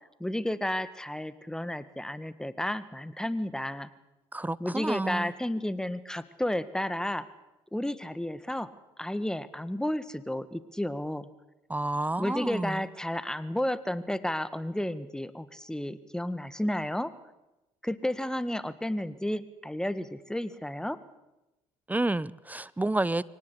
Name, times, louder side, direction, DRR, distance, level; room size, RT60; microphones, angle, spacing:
voice 1, 0.2-3.9 4.6-7.3 7.7-8.7 9.0-11.3 12.2-17.1 17.8-21.0, left 1 dB, 5° left, 1.8 m, -32 dB
voice 2, 4.3-5.3 11.7-12.8 21.9-23.2, right 2 dB, 10° right, 0.8 m, -30 dB
24.0 x 18.5 x 8.5 m
supercardioid pair, 65°, 13 cm